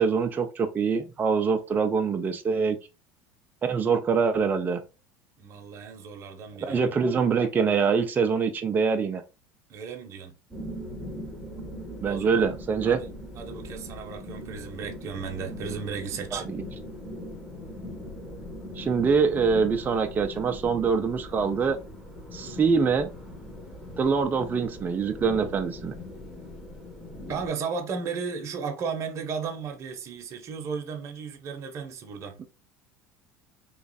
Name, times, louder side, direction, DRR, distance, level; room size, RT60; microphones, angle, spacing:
voice 1, 0.0-2.8 3.6-4.8 6.6-9.2 12.0-13.0 16.3-16.6 18.8-21.8 22.3-23.1 24.0-25.9 32.4-32.5, right 5 dB, 25° right, 0.4 m, -24 dB
voice 2, 5.4-6.9 9.7-10.3 12.0-12.5 12.8-13.1 13.3-16.5 27.3-32.4, right 5 dB, 40° right, 0.9 m, -35 dB
sound 1, 10.5-27.5, left 1 dB, 5° left, 1.1 m, -40 dB
3.1 x 2.4 x 4.0 m
supercardioid pair, 110°, 7 cm